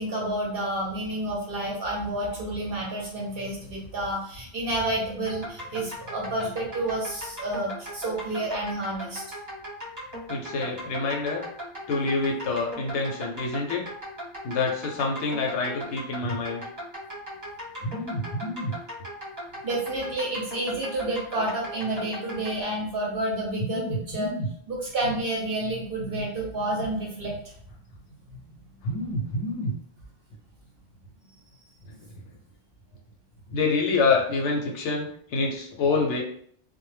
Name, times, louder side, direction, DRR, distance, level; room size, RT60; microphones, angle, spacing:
voice 1, 0.0-9.2 19.6-24.3 24.7-27.5 28.3-28.5, right 1 dB, 55° right, -2 dB, 0.7 m, -30 dB
sound 1, 5.3-22.6, equal, 15° right, 0.7 m, -38 dB
voice 2, 10.3-11.4 11.9-13.8 14.4-16.6 17.8-18.7 23.6-24.5 28.8-29.7 31.9-32.2 33.5-36.2, left 3 dB, 70° left, 0 dB, 0.8 m, -27 dB
2.1 x 2.0 x 3.1 m, 0.63 s
omnidirectional pair, 1.3 m